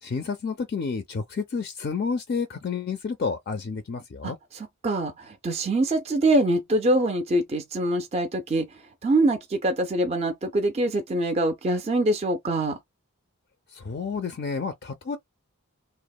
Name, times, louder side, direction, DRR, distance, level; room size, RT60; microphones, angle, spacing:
voice 1, 0.0-4.4 13.7-15.2, left 5 dB, 45° left, 0.4 m, -30 dB
voice 2, 4.2-8.7 9.0-12.8, right 1 dB, 30° right, 0.4 m, -24 dB
2.9 x 2.0 x 2.3 m
head